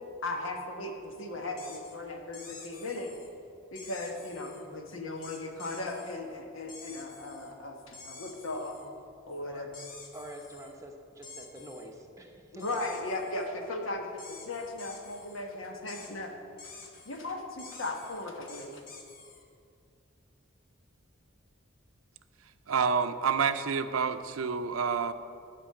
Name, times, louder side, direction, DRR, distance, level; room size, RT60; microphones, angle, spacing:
voice 1, 0.2-3.1 3.7-8.8 9.3-9.7 12.5-16.3 17.0-18.8, left 2 dB, 70° left, 3 dB, 1.2 m, -37 dB
sound 1, 1.6-2.0 2.3-3.3 3.8-4.6 5.2-6.2 6.7-7.5 7.9-8.9 9.7-10.7 11.2-11.9 12.6-13.5 14.2-15.4 15.9-16.1 16.6-17.2 17.6-19.4, left 4 dB, 40° left, 1.2 m, -49 dB
voice 2, 10.1-12.9, right 1 dB, 15° right, 2 dB, 0.8 m, -46 dB
voice 3, 22.7-25.1, right 6 dB, 85° right, 11 dB, 0.5 m, -28 dB
10.0 x 5.2 x 7.7 m, 2.4 s
head